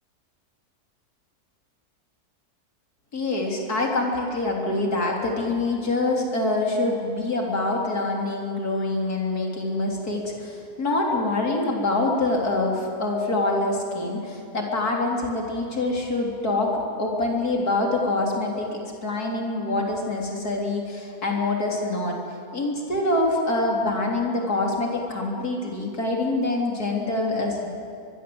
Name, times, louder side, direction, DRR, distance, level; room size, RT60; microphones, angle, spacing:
voice 1, 3.1-22.2 22.5-27.7, left 2 dB, 75° left, 0 dB, 4.0 m, -25 dB
23.0 x 22.0 x 7.9 m, 2.4 s
omnidirectional pair, 1.6 m